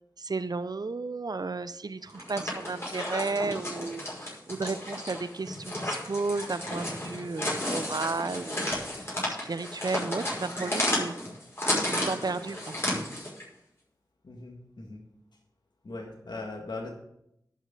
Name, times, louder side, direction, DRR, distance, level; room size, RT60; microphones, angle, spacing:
voice 1, 0.2-8.7 9.0-9.1 9.4-11.1 11.9-12.7, right 3 dB, 60° right, 14 dB, 0.6 m, -33 dB
sound 1, 2.1-13.4, left 1 dB, 35° left, 5.5 m, -33 dB
voice 2, 14.2-15.0 15.8-16.9, left 2 dB, 80° left, -1 dB, 1.9 m, -39 dB
10.5 x 6.5 x 7.3 m, 0.79 s
cardioid pair, 40°, 7 cm